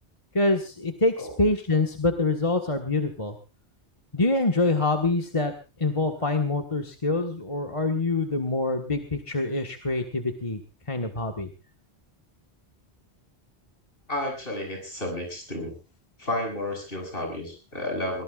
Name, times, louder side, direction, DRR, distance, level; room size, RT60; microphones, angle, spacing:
voice 1, 0.3-3.3 4.1-5.5 5.8-10.6 10.9-11.5, left 2 dB, 30° left, 3 dB, 1.6 m, -25 dB
voice 2, 14.1-15.7 16.2-18.2, left 1 dB, 55° left, 2 dB, 8.0 m, -31 dB
23.0 x 20.0 x 2.5 m, 0.32 s
omnidirectional pair, 1.1 m